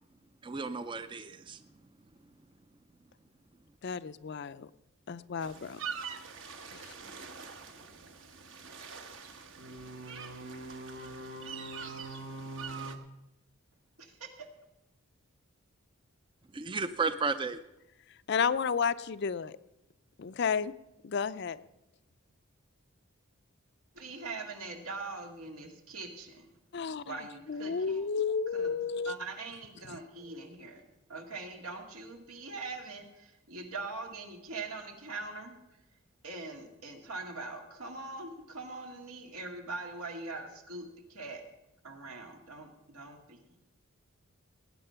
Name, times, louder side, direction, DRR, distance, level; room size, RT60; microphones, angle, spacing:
voice 1, 0.4-1.6 16.5-17.6, right 4 dB, 20° right, 11 dB, 0.4 m, -33 dB
voice 2, 3.8-4.7 5.1-5.8 6.7-6.9 18.1-19.6 20.2-20.7 21.0-21.6 26.7-27.2 27.5-29.2, left 6 dB, 50° left, 14 dB, 0.4 m, -32 dB
sound 1, 5.4-13.0, right 4 dB, 60° right, 1.1 m, -43 dB
voice 3, 14.0-14.5 23.9-26.5 27.0-28.1 28.5-30.8 31.1-35.6 36.2-41.4 41.8-43.4, right 3 dB, 90° right, 3 dB, 2.2 m, -42 dB
19.0 x 9.2 x 5.7 m, 0.92 s
head